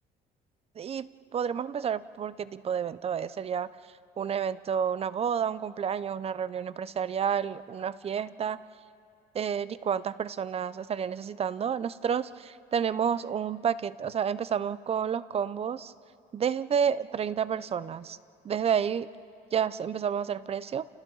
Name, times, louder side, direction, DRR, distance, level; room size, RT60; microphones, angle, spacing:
voice 1, 0.8-3.7 4.2-8.6 9.3-15.9 16.3-18.2 18.4-19.1 19.5-20.9, right 7 dB, 35° right, 16 dB, 0.6 m, -30 dB
30.0 x 29.0 x 4.0 m, 2.6 s
cardioid pair, 110°, 17 cm